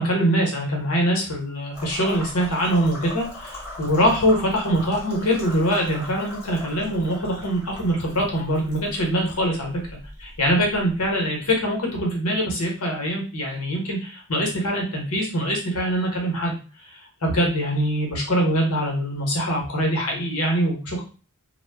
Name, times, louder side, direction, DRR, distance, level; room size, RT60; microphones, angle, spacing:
voice 1, 0.0-9.7 10.2-16.6 16.9-21.0, equal, 85° left, 0 dB, 1.0 m, -23 dB
sound 1, 1.7-11.5, left 1 dB, 10° left, 1.2 m, -39 dB
2.2 x 2.1 x 3.3 m, 0.36 s
head